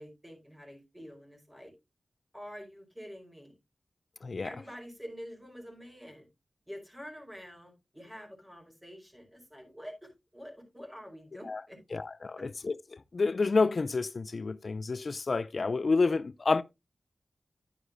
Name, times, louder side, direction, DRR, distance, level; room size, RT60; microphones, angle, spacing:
voice 1, 0.0-1.7 2.3-3.5 4.4-6.3 6.7-11.8 12.4-12.5, equal, 15° right, 5.0 m, -47 dB
voice 2, 11.9-16.6, left 4 dB, 60° left, 0.4 m, -29 dB
11.0 x 9.5 x 2.5 m
cardioid pair, 55°, 0 cm